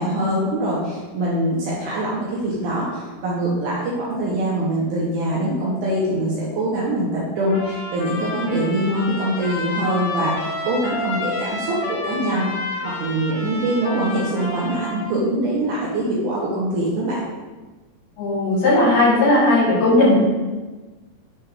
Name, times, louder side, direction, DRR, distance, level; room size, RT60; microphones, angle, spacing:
voice 1, 0.0-10.3 10.6-12.5 12.8-17.2 20.0-20.2, right 1 dB, 80° right, -5 dB, 1.9 m, -23 dB
Trumpet, 7.5-15.1, left 3 dB, 90° left, 1.7 m, -30 dB
voice 2, 18.2-20.2, left 2 dB, 65° left, -8 dB, 2.5 m, -16 dB
6.1 x 3.2 x 2.2 m, 1.2 s
omnidirectional pair, 4.2 m